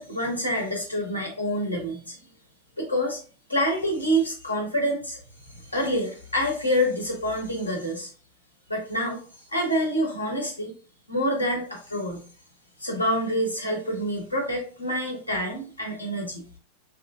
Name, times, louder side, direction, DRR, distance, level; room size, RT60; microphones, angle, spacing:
voice 1, 0.0-2.3 2.8-3.2 3.5-5.2 5.5-8.1 8.7-9.2 9.5-10.7 11.1-12.3 12.8-16.5, equal, 85° left, 0 dB, 0.9 m, -27 dB
3.1 x 2.4 x 2.3 m, 0.40 s
figure-of-eight pair, 90°, 0 cm